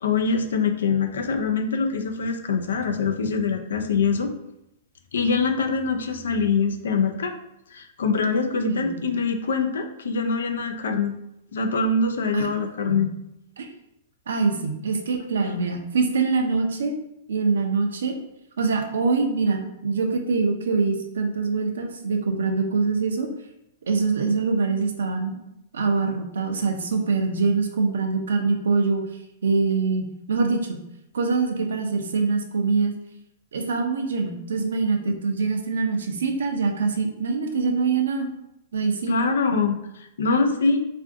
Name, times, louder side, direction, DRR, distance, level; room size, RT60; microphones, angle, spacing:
voice 1, 0.0-4.3 5.1-7.3 7.7-11.1 11.5-13.1 15.4-15.6 39.1-40.8, left 4 dB, 85° left, 6 dB, 0.4 m, -24 dB
voice 2, 8.7-9.0 12.3-12.5 12.9-13.1 13.6-13.7 14.3-17.0 17.3-18.1 18.6-23.3 23.9-25.4 25.7-29.0 29.4-30.8 31.1-32.9 33.5-38.3 38.7-39.2 40.3-40.4, right 4 dB, 85° right, 4 dB, 0.5 m, -24 dB
2.5 x 2.4 x 3.6 m, 0.83 s
hypercardioid pair, 130°, 0 cm